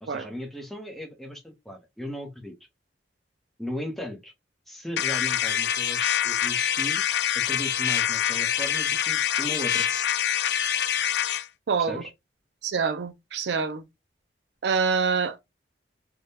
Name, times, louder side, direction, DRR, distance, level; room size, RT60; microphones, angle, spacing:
voice 1, 0.0-2.5 3.6-4.3 4.7-7.0 7.3-9.9 11.8-12.1, equal, ahead, 0.8 m, -37 dB
sound 1, 5.0-11.5, left 10 dB, 70° left, 0.4 m, -25 dB
voice 2, 11.7-12.0 12.6-13.8 14.6-15.4, right 5 dB, 70° right, 0.5 m, -26 dB
3.5 x 2.2 x 2.7 m
head